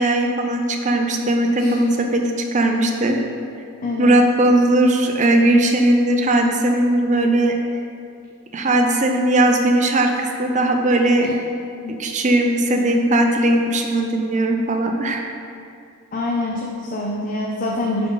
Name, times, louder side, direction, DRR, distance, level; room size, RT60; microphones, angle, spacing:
voice 1, 0.0-2.2 2.5-3.2 4.0-7.5 8.5-11.3 11.9-15.2, right 1 dB, 35° right, 3 dB, 0.6 m, -18 dB
voice 2, 3.8-4.2 11.2-11.3 11.8-12.0 16.1-18.1, left 2 dB, 35° left, -2 dB, 0.6 m, -25 dB
10.5 x 3.8 x 3.9 m, 2.4 s
head